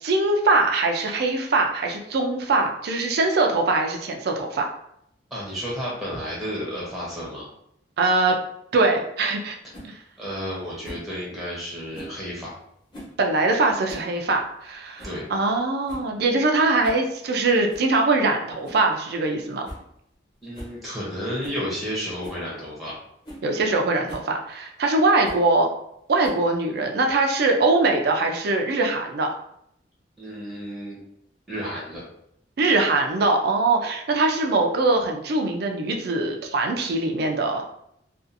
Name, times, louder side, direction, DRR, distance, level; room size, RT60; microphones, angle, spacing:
voice 1, 0.0-4.7 8.0-8.3 8.7-9.6 13.2-19.7 23.4-25.7 26.1-29.3 32.6-37.6, right 3 dB, 55° right, 3 dB, 0.4 m, -22 dB
voice 2, 5.3-7.5 10.2-12.5 15.0-15.2 20.4-22.9 30.2-31.0 31.5-32.0, equal, ahead, -6 dB, 0.7 m, -32 dB
sound 1, 9.7-9.9 10.8-11.1 11.9-12.2 12.9-13.2 13.7-14.1 14.4-14.5 15.0-15.2 15.6-15.7 15.9-16.1 16.8-17.1 17.7-17.9 18.6-18.9 19.2-19.3 19.6-19.9 20.1-20.2 20.5-20.8 21.4-21.6 22.2-22.4 22.9-23.0 23.2-23.5 24.1-24.3 25.2-25.5 26.2-26.6, equal, 25° left, 1.0 m, -41 dB
2.6 x 2.4 x 2.5 m, 0.74 s
head